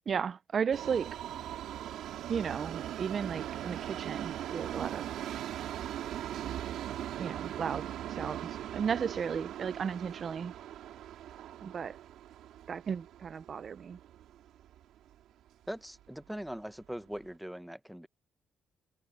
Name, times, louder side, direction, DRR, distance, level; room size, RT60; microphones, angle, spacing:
voice 1, 0.1-1.1 2.3-5.0 7.2-8.4 8.7-10.5 11.6-12.0 12.7-14.0, right 6 dB, 35° right, 0.3 m, -34 dB
Subway metro underground, 0.7-14.8 15.1-15.2 16.1-16.2 16.5-16.6 17.2-17.3, right 11 dB, 80° right, 3.3 m, -40 dB
voice 2, 15.7-18.1, equal, ahead, 0.7 m, -41 dB
cardioid pair, 155°, 0 cm